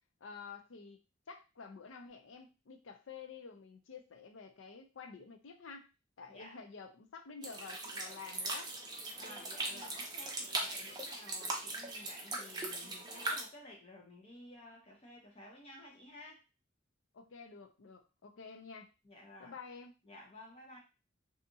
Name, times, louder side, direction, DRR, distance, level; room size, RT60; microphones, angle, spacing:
voice 1, 0.2-1.0 1.3-5.9 6.2-8.7 17.1-18.9 19.4-19.9, left 5 dB, 70° left, 6 dB, 0.5 m, -50 dB
voice 2, 6.3-6.6 9.2-16.4 19.0-19.6 20.0-20.8, left 1 dB, 30° left, -1 dB, 0.7 m, -53 dB
sound 1, 7.4-13.4, right 2 dB, 20° right, 0.5 m, -40 dB
2.7 x 2.3 x 2.6 m, 0.30 s
head